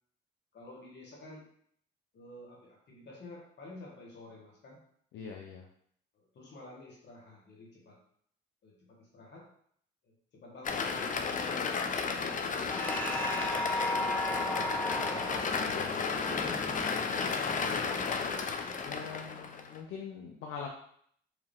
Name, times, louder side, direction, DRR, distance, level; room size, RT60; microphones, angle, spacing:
voice 1, 0.5-1.5 2.1-4.8 6.1-8.0 8.6-9.5 10.0-13.0 13.3-15.5 16.2-16.6 17.0-18.7, left 2 dB, 60° left, -3 dB, 1.8 m, -50 dB
voice 2, 5.1-5.6 15.6-16.1 18.9-20.7, left 6 dB, 80° left, 1 dB, 0.6 m, -43 dB
sound 1, 10.6-19.8, left 5 dB, 40° left, 0.5 m, -33 dB
sound 2, 12.7-17.5, left 1 dB, 10° left, 0.9 m, -35 dB
4.8 x 2.9 x 3.5 m, 0.65 s
cardioid pair, 90°, 20 cm